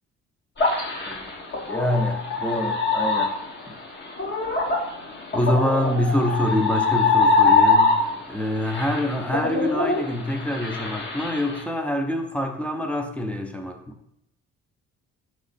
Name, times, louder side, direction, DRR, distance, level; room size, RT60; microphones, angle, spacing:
sound 1, 0.6-8.3 8.7-11.6, left 3 dB, 35° left, 1.0 m, -23 dB
voice 1, 1.7-3.3 5.3-7.9 8.3-13.8, left 1 dB, 5° left, 4 dB, 0.6 m, -25 dB
4.3 x 3.1 x 4.1 m, 0.77 s
cardioid pair, 90°, 30 cm